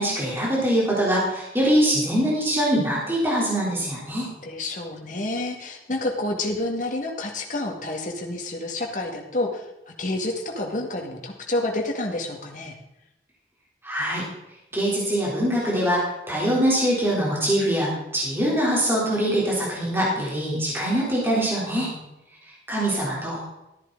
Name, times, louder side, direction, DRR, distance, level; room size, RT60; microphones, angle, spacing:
voice 1, 0.0-4.3 13.8-14.3 14.7-21.9 22.7-23.4, equal, 15° right, -5 dB, 3.6 m, -23 dB
voice 2, 4.4-12.8, left 2 dB, 45° left, 1 dB, 2.1 m, -29 dB
13.5 x 11.0 x 4.0 m, 0.92 s
head